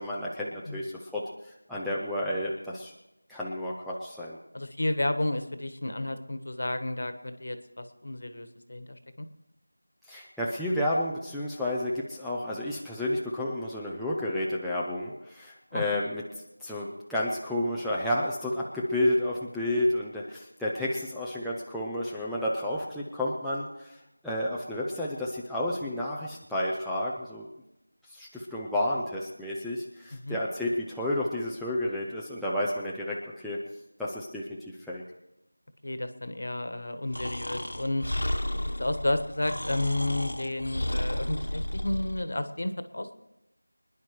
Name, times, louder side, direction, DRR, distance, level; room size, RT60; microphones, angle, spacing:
voice 1, 0.0-2.9 3.3-4.4 10.1-27.5 28.0-33.6 34.0-34.5 34.9-35.0, left 1 dB, ahead, -9 dB, 0.4 m, -31 dB
voice 2, 4.5-9.3 15.7-15.8 30.2-30.4 35.8-38.0 38.5-43.1, left 1 dB, 50° left, 9 dB, 1.4 m, -32 dB
Breathing, 37.1-42.2, left 1 dB, 80° left, 1.6 m, -32 dB
25.5 x 10.5 x 3.2 m, 0.91 s
figure-of-eight pair, 175°, 0 cm